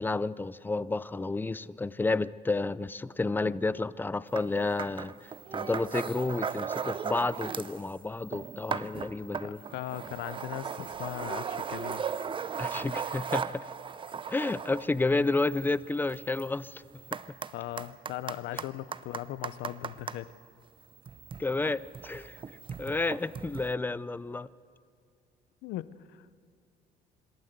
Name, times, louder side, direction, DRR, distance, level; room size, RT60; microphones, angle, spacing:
voice 1, 0.0-5.1 5.5-9.6 12.6-13.7 14.3-16.8 21.4-22.4 22.8-24.5, left 3 dB, 10° left, 18 dB, 0.5 m, -31 dB
sound 1, 4.4-4.5 4.8-7.8 8.1-20.2 21.0-23.7, right 6 dB, 30° right, 0.6 m, -37 dB
voice 2, 9.4-12.1 17.5-20.3 25.6-26.3, left 14 dB, 85° left, 16 dB, 0.7 m, -39 dB
26.0 x 13.0 x 8.0 m, 2.3 s
cardioid pair, 110°, 17 cm